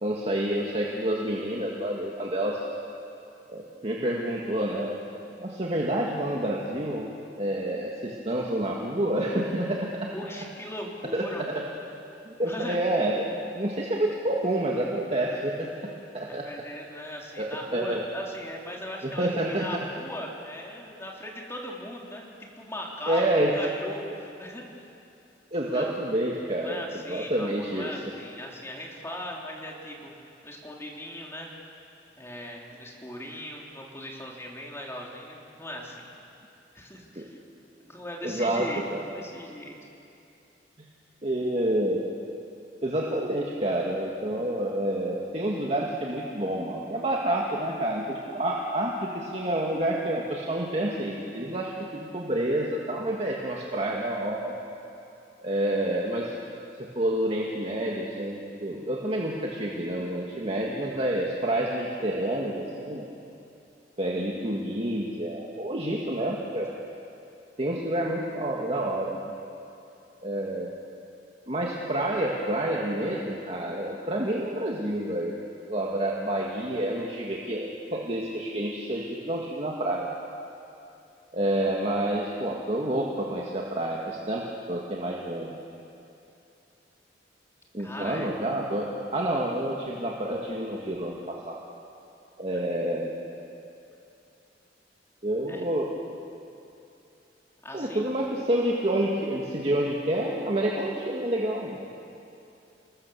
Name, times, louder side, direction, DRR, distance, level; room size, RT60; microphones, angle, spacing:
voice 1, 0.0-2.6 3.5-5.0 5.4-7.1 7.4-10.1 11.1-11.6 12.3-15.7 16.1-16.5 17.4-18.0 19.0-19.7 23.1-23.5 25.5-27.9 37.2-37.3 38.2-39.0 41.2-42.1 42.8-54.6 55.4-56.3 56.8-63.1 64.0-66.7 67.6-69.2 70.2-70.8 71.5-75.4 75.7-80.1 81.3-85.6 87.7-91.6 92.4-93.1 95.2-96.0 97.7-101.9, right 1 dB, 35° right, -2 dB, 1.9 m, -28 dB
voice 2, 10.1-11.4 12.4-12.8 16.2-19.3 19.6-22.3 22.6-23.2 23.5-24.9 25.6-25.9 26.6-30.1 30.4-31.5 32.2-36.1 36.7-37.4 37.8-39.8 87.8-88.3 92.5-92.6 95.5-95.6 97.6-98.1, left 1 dB, 15° left, -2 dB, 3.4 m, -39 dB
28.5 x 20.0 x 7.1 m, 2.7 s
head